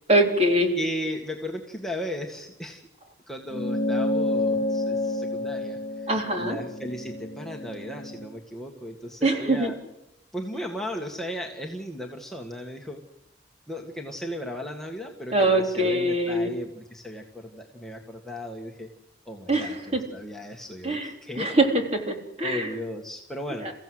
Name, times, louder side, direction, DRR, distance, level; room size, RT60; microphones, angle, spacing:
voice 1, 0.1-0.8 6.1-6.6 9.2-9.7 15.3-16.5 19.5-20.0 20.8-22.7 23.6-23.7, right 1 dB, 35° right, 3 dB, 3.6 m, -23 dB
voice 2, 0.7-2.8 3.3-6.1 6.4-9.8 10.3-13.0 13.7-18.9 19.3-21.5 22.4-23.7, equal, ahead, 0 dB, 1.8 m, -36 dB
sound 1, 3.5-8.3, left 1 dB, 45° left, 1.7 m, -29 dB
29.5 x 16.0 x 7.9 m, 0.90 s
head